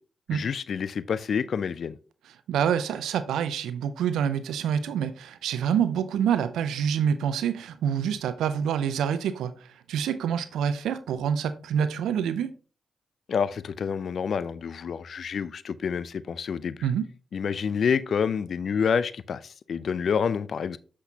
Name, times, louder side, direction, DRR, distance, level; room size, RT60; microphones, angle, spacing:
voice 1, 0.3-2.0 13.3-16.9 17.3-20.8, left 6 dB, 70° left, 0.4 m, -28 dB
voice 2, 2.5-12.5 16.8-17.1, right 8 dB, 85° right, 0.4 m, -27 dB
7.9 x 6.1 x 2.8 m
supercardioid pair, 40°, 0 cm